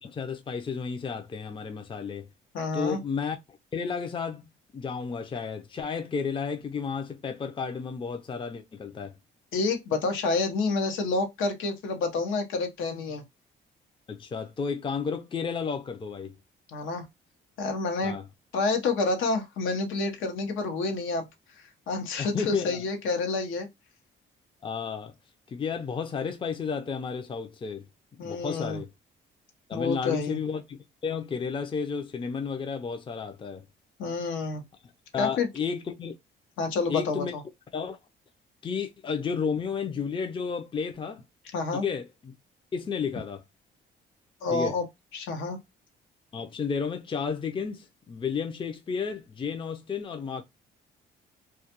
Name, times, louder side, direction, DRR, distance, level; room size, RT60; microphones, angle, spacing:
voice 1, 0.0-2.3 2.7-9.1 14.1-16.4 18.0-18.2 22.2-22.8 24.6-25.1 25.5-27.9 28.1-28.9 29.7-33.6 35.1-36.1 36.9-37.3 37.7-38.0 38.6-41.2 41.7-42.3 42.7-43.4 44.5-44.7 46.3-50.4, left 6 dB, 25° left, 0.5 m, -32 dB
voice 2, 2.5-3.0 9.5-13.2 16.7-17.1 17.6-18.1 18.5-21.2 21.9-23.7 28.2-28.8 29.7-30.4 34.0-34.6 35.2-35.5 36.6-37.4 41.5-41.9 44.4-44.8 45.1-45.6, left 3 dB, 80° left, 0.8 m, -28 dB
2.3 x 2.2 x 2.8 m
cardioid pair, 90°, 20 cm